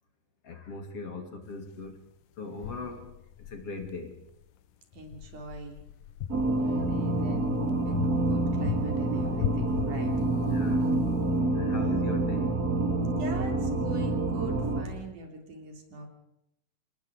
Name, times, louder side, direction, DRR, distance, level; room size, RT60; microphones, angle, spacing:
voice 1, 0.4-2.0 2.4-4.2 10.2-11.0 11.5-12.6, left 3 dB, 45° left, 5 dB, 3.6 m, -40 dB
sound 1, 1.8-1.9 2.6-4.5 4.9-7.3 7.9-10.6, left 10 dB, 80° left, 2.5 m, -38 dB
voice 2, 4.9-5.8 6.4-7.5 7.8-10.1 11.4-11.9 13.2-16.1, right 3 dB, 70° right, 4 dB, 5.0 m, -43 dB
sound 2, 6.3-14.8, right 2 dB, 30° right, 3.2 m, -27 dB
27.5 x 20.0 x 5.1 m, 0.79 s
omnidirectional pair, 3.8 m